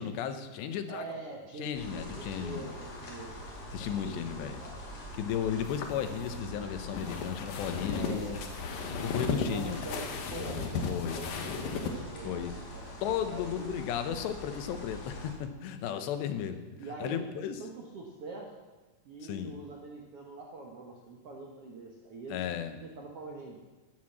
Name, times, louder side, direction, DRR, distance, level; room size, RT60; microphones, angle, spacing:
voice 1, 0.0-1.2 1.6-2.7 3.7-4.6 5.1-8.5 9.0-9.8 10.8-11.2 12.2-12.5 13.0-17.6 19.2-19.6 22.3-22.8, left 9 dB, 90° left, 8 dB, 3.2 m, -34 dB
voice 2, 0.9-3.4 3.8-4.8 7.9-8.4 9.5-12.8 13.1-13.8 16.8-18.5 19.0-22.4 22.7-23.6, right 3 dB, 70° right, 0 dB, 1.3 m, -44 dB
sound 1, 1.7-15.3, equal, 45° left, 3.4 m, -44 dB
sound 2, 5.6-11.9, left 5 dB, 65° left, 2.6 m, -36 dB
14.0 x 9.7 x 7.3 m, 1.2 s
omnidirectional pair, 4.8 m